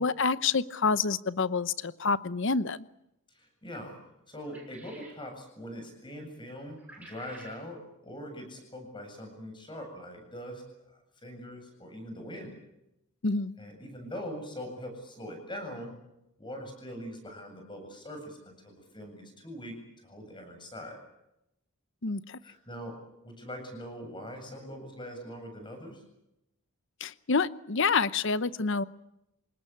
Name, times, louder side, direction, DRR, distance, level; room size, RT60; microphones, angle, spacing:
voice 1, 0.0-2.9 13.2-13.5 22.0-22.4 27.0-28.8, left 4 dB, 55° left, 15 dB, 0.8 m, -28 dB
voice 2, 3.3-3.9 4.3-10.6 11.2-12.5 13.6-15.9 16.4-19.8 20.0-21.0 22.4-23.0 23.2-26.0, equal, 20° left, 5 dB, 7.9 m, -42 dB
sound 1, 4.5-5.2 6.8-7.6, right 2 dB, 5° right, 6.6 m, -51 dB
27.5 x 19.0 x 8.6 m, 0.85 s
head